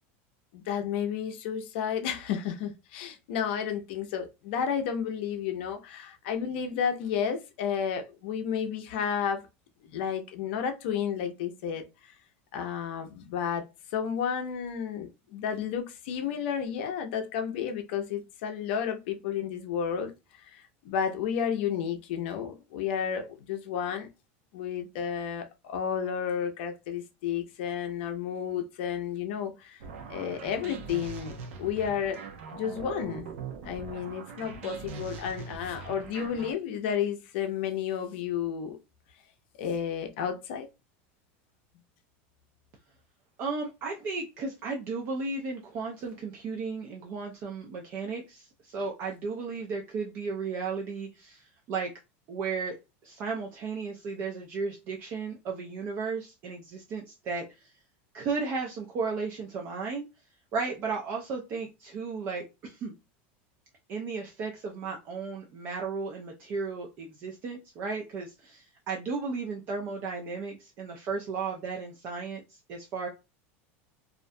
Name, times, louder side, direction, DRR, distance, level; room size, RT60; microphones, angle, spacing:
voice 1, 0.5-9.4 9.8-11.8 12.5-13.7 13.9-20.1 20.5-24.1 24.5-29.8 30.1-32.2 32.5-33.2 33.6-38.8 39.6-40.7, left 8 dB, 60° left, 0.5 m, -32 dB
sound 1, 29.8-36.5, right 5 dB, 85° right, 0.6 m, -41 dB
voice 2, 43.4-51.9 52.3-52.8 53.0-57.7 58.1-60.0 60.5-62.9 63.9-73.1, right 4 dB, 30° right, 0.4 m, -34 dB
2.4 x 2.1 x 2.6 m
supercardioid pair, 175°, 7 cm